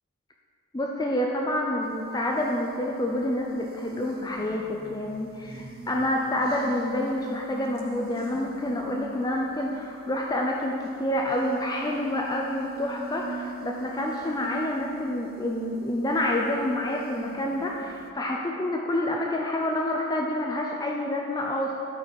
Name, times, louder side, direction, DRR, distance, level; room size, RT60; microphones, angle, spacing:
voice 1, 0.7-21.8, left 1 dB, 20° left, -1 dB, 0.5 m, -28 dB
sound 1, 1.8-18.1, right 2 dB, 45° right, 0.7 m, -42 dB
12.0 x 5.5 x 4.5 m, 2.8 s
head